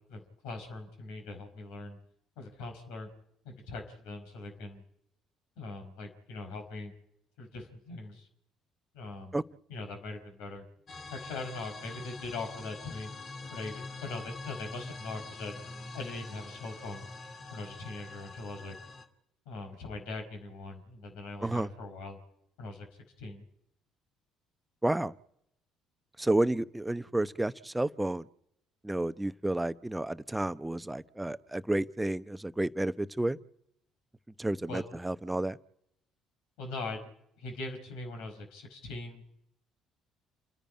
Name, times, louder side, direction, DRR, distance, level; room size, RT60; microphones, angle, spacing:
voice 1, 0.1-2.0 2.4-3.1 3.4-4.8 5.6-6.9 7.4-8.3 8.9-9.4 9.7-10.6 11.1-13.1 13.5-15.6 15.9-17.1 17.5-18.8 19.4-22.2 22.6-22.9 23.2-23.4 34.7-35.1 36.6-37.0 37.4-39.2, left 3 dB, 70° left, 5 dB, 4.8 m, -41 dB
sound 1, 10.9-19.1, left 3 dB, 45° left, 2.4 m, -45 dB
voice 2, 24.8-25.1 26.2-28.2 28.8-33.4 34.4-35.6, right 1 dB, 10° right, 15 dB, 0.8 m, -31 dB
29.0 x 10.5 x 9.8 m, 0.78 s
hypercardioid pair, 50°, 0 cm